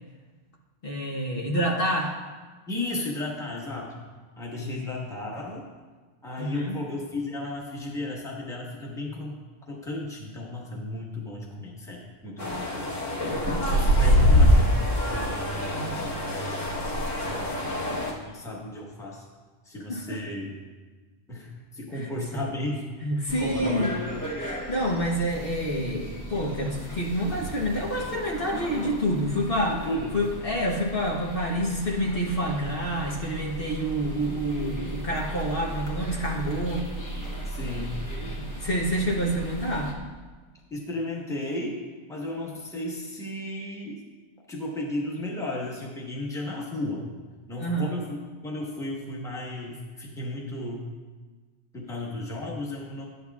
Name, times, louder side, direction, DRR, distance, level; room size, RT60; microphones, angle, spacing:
voice 1, 0.8-2.1 4.6-5.0 6.4-6.7 14.2-14.5 19.9-20.2 21.9-22.1 23.0-24.0 24.4-29.9 30.1-36.9 38.4-39.9 47.6-47.9, equal, 50° left, -2 dB, 1.1 m, -28 dB
voice 2, 2.7-4.0 4.4-5.6 6.2-9.4 9.7-12.9 13.7-16.7 17.2-17.8 18.2-19.3 19.6-20.7 21.3-24.0 29.7-30.1 37.4-38.0 40.7-44.0 44.5-47.1 47.5-50.9 51.7-53.1, left 1 dB, 5° left, -2 dB, 1.1 m, -34 dB
sound 1, 12.4-18.1, left 1 dB, 85° left, 1.7 m, -23 dB
sound 2, 23.3-39.9, right 1 dB, 20° left, 0.8 m, -36 dB
11.0 x 9.3 x 2.4 m, 1.4 s
omnidirectional pair, 1.2 m